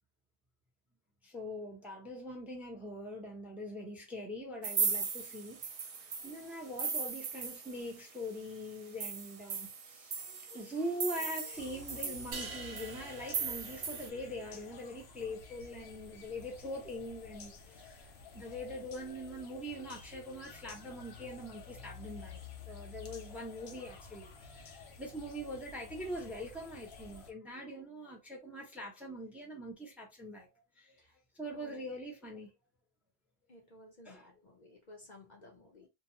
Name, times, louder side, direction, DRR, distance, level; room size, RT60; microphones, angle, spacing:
voice 1, 1.2-30.5 30.8-31.0 31.3-32.5 34.0-34.3, equal, ahead, 0.7 m, -43 dB
sound 1, 4.6-8.1 8.4-8.5 8.8-14.1, right 6 dB, 50° right, 0.4 m, -38 dB
sound 2, 11.5-27.3, left 5 dB, 85° left, 0.9 m, -51 dB
sound 3, 12.3-14.6, right 4 dB, 80° right, 1.0 m, -46 dB
voice 2, 31.4-31.9 33.5-35.9, left 1 dB, 50° left, 0.7 m, -56 dB
2.8 x 2.2 x 2.6 m
omnidirectional pair, 1.0 m